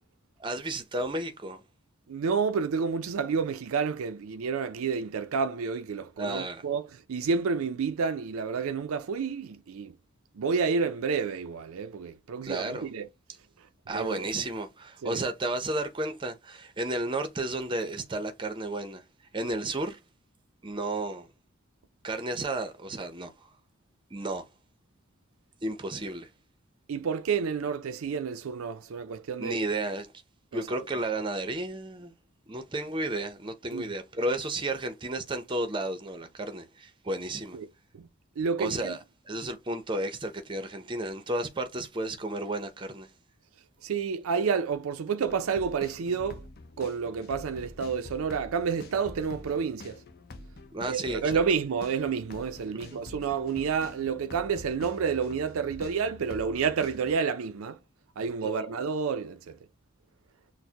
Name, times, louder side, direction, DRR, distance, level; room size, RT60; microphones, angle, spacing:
voice 1, 0.4-1.6 6.2-6.6 12.4-12.9 13.9-19.0 19.3-20.0 20.6-21.3 22.0-23.5 24.1-24.5 25.6-26.3 29.4-30.1 30.5-32.1 32.5-37.6 38.6-39.0 39.3-43.1 50.7-51.2 52.9-53.0 58.4-58.5, right 2 dB, 20° right, 0.6 m, -32 dB
voice 2, 2.1-10.0 10.3-13.1 13.6-13.7 13.9-14.3 15.0-15.2 26.9-29.7 30.5-30.8 33.7-33.9 37.5-37.7 37.9-38.1 38.4-39.0 43.8-46.5 46.8-50.0 50.9-57.8 58.2-59.6, right 5 dB, 80° right, 0.4 m, -30 dB
sound 1, 45.2-57.2, left 2 dB, 45° left, 0.5 m, -46 dB
6.2 x 2.1 x 2.8 m
head